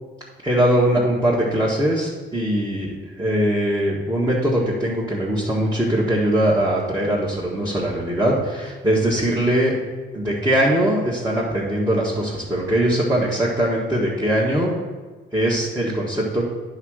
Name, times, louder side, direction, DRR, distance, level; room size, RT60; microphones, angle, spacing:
voice 1, 0.4-9.7 10.1-14.7 15.3-16.5, right 1 dB, 15° right, -6 dB, 1.7 m, -21 dB
9.8 x 3.7 x 6.5 m, 1.3 s
cardioid pair, 90°, 20 cm